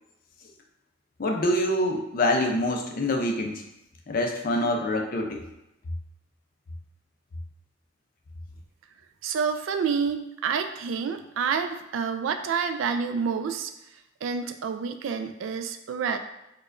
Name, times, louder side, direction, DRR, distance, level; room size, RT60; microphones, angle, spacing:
voice 1, 1.2-3.6 4.1-5.4, left 1 dB, 45° left, 2 dB, 0.5 m, -25 dB
voice 2, 9.2-13.7 14.2-16.2, right 6 dB, 80° right, 8 dB, 0.3 m, -28 dB
4.6 x 2.2 x 2.5 m, 0.89 s
head